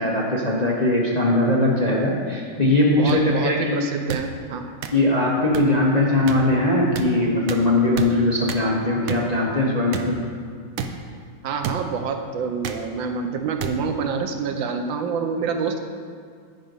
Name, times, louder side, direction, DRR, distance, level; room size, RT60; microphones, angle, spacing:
voice 1, 0.0-3.8 4.9-10.2, left 2 dB, 35° left, -4 dB, 0.6 m, -20 dB
voice 2, 2.9-4.7 11.4-15.8, right 5 dB, 90° right, 5 dB, 1.5 m, -27 dB
sound 1, 3.1-3.2 4.1-4.2 4.8-4.9 5.5-5.6 6.3-6.4 7.0-7.1 7.5-7.6 8.0-8.1 8.5-8.6 9.1-9.2 9.9-10.1 10.8-10.9 11.6-11.8 12.6-12.8 13.6-13.7 14.6-14.7, right 7 dB, 70° right, 0.8 m, -29 dB
10.0 x 5.2 x 5.3 m, 2.1 s
omnidirectional pair, 2.1 m